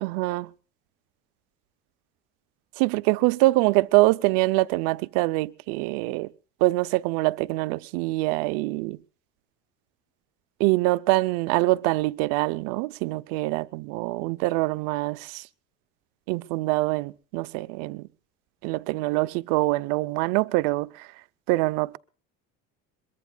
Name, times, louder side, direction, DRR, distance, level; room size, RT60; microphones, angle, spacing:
voice 1, 0.0-0.5 2.8-6.3 6.6-9.0 10.6-15.4 16.3-18.0 18.6-21.1 21.5-22.0, right 21 dB, 90° right, 0.7 m, -24 dB
22.5 x 22.5 x 2.3 m
cardioid pair, 140°, 32 cm